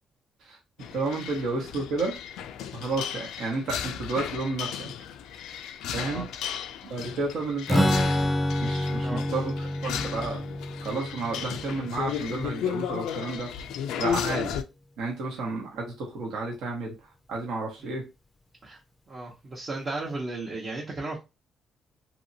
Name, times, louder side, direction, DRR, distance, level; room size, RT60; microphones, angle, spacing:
sound 1, 0.8-14.6, left 9 dB, 90° left, 0.3 m, -35 dB
voice 1, 0.9-2.2 2.7-4.9 5.9-6.2 6.8-7.9 8.6-10.4 10.8-13.5 14.0-14.6 15.0-16.9 17.3-18.1, right 3 dB, 80° right, -1 dB, 1.1 m, -31 dB
Strum, 7.7-13.3, left 1 dB, 15° left, 0.4 m, -28 dB
voice 2, 19.1-21.2, right 2 dB, 45° right, -3 dB, 0.8 m, -36 dB
2.8 x 2.7 x 2.7 m, 0.26 s
cardioid pair, 90°, 0 cm